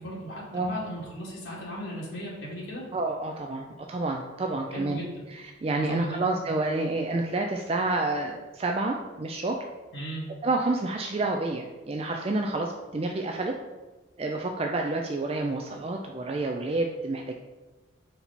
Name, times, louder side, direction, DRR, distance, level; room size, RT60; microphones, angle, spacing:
voice 1, 0.0-2.8 4.7-5.3 5.8-6.2 9.9-10.2, equal, 80° left, -5 dB, 1.8 m, -36 dB
voice 2, 2.9-5.0 5.3-9.6 10.4-13.5 14.2-17.3, right 2 dB, 30° right, 2 dB, 0.4 m, -29 dB
5.3 x 4.5 x 4.1 m, 1.2 s
head